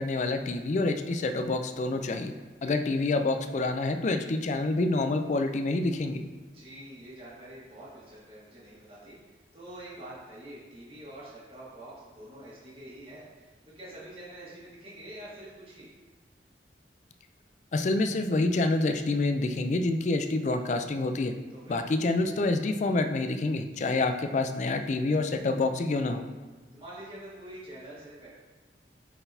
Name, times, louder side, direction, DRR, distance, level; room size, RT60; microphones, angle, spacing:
voice 1, 0.0-2.3 2.6-6.2 17.7-21.3 21.7-26.2, left 2 dB, 40° left, 7 dB, 0.4 m, -27 dB
voice 2, 6.5-9.1 9.5-15.9 21.5-21.8 26.7-28.3, right 1 dB, 30° right, -9 dB, 1.4 m, -46 dB
9.8 x 4.0 x 2.7 m, 1.3 s
head